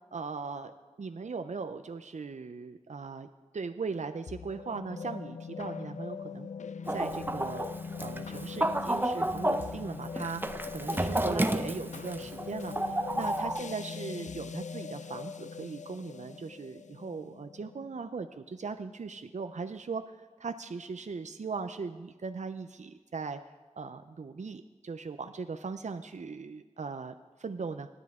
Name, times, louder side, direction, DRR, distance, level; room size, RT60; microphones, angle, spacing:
voice 1, 0.1-0.7 1.0-3.3 3.5-6.5 6.9-7.6 8.0-10.4 10.7-23.4 23.8-27.9, right 4 dB, 75° right, 8 dB, 0.5 m, -39 dB
sound 1, 4.3-18.7, left 6 dB, 80° left, 0.4 m, -42 dB
Chicken rooster, 6.9-13.6, right 1 dB, 15° right, 0.6 m, -32 dB
26.0 x 9.9 x 3.6 m, 1.4 s
wide cardioid pair, 45°, 12 cm